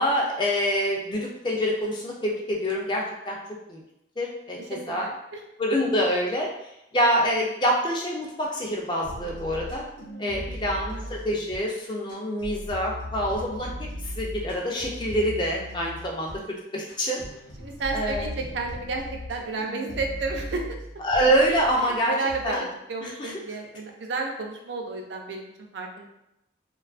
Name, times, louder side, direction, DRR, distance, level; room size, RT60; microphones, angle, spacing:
voice 1, 0.0-3.4 3.7-3.8 4.2-5.1 5.6-6.5 6.9-9.8 10.2-17.2 17.9-18.3 21.0-22.1 22.4-22.6 23.0-23.3, equal, 25° left, -1 dB, 0.3 m, -26 dB
voice 2, 4.7-5.4 10.0-10.4 10.9-11.1 17.6-19.0 19.3-20.8 21.8-22.6 22.9-26.1, right 3 dB, 75° right, 1 dB, 0.4 m, -32 dB
sound 1, 9.0-11.8 12.1-16.4 16.9-22.0 22.3-22.5, left 1 dB, 85° left, 0.8 m, -38 dB
2.5 x 2.3 x 2.4 m, 0.84 s
head